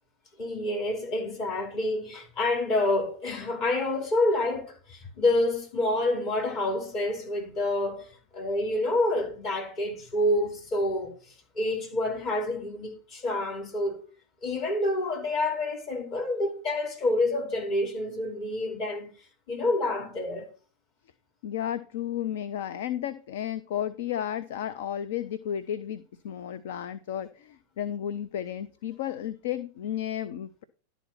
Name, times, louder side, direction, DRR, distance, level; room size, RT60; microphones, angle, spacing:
voice 1, 0.4-11.1 11.5-14.1 14.4-19.1 19.5-20.5, left 2 dB, 35° left, 2.8 m, -28 dB
voice 2, 21.4-30.6, left 10 dB, 55° left, 0.5 m, -33 dB
11.5 x 4.1 x 5.8 m
figure-of-eight pair, 90°, 0 cm